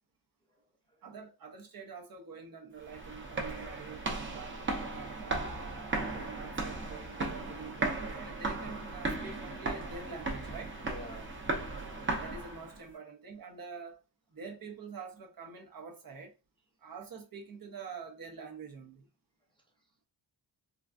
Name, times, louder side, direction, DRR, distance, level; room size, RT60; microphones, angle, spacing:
voice 1, 0.5-1.0 10.8-11.4 12.9-13.0 19.5-19.9, left 1 dB, 10° left, 0.5 m, -51 dB
voice 2, 1.0-5.4 5.9-10.8 12.2-14.0 14.3-16.3 16.8-19.1, right 5 dB, 45° right, 1.0 m, -46 dB
sound 1, 2.8-12.8, right 2 dB, 25° right, 0.8 m, -36 dB
3.9 x 2.3 x 2.5 m
cardioid pair, 100°, 46 cm